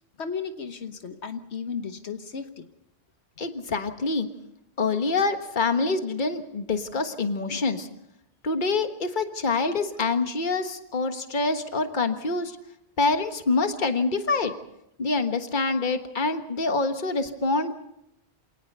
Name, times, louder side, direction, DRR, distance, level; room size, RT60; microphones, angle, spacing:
voice 1, 0.2-2.7, left 6 dB, 85° left, 8 dB, 1.5 m, -34 dB
voice 2, 3.4-4.3 4.8-7.9 8.4-12.5 13.0-14.5 15.0-17.7, left 3 dB, 50° left, 7 dB, 1.5 m, -26 dB
27.0 x 18.5 x 5.4 m, 0.80 s
omnidirectional pair, 1.1 m